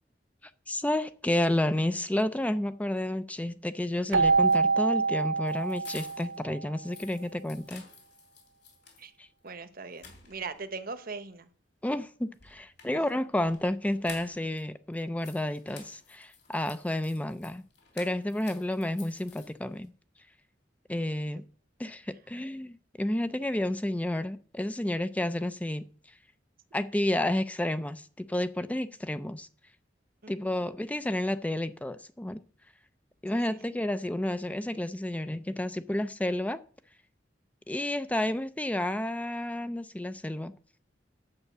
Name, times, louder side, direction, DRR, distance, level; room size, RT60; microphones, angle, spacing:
voice 1, 0.4-7.8 9.2-9.3 11.8-17.6 18.0-19.9 20.9-21.4 21.8-25.9 26.7-29.5 30.3-32.4 33.2-36.6 37.7-40.5, left 1 dB, 10° left, 0.4 m, -31 dB
Keyboard (musical), 4.1-6.7, right 4 dB, 85° right, 0.5 m, -26 dB
sound 1, 4.3-6.4 6.7-9.1 9.5-9.6 9.9-10.7 12.3-14.6 14.9-19.9, left 5 dB, 65° left, 3.2 m, -52 dB
voice 2, 9.4-11.5 30.2-30.5 33.3-33.6, right 4 dB, 55° right, 1.1 m, -40 dB
9.8 x 5.7 x 7.9 m
head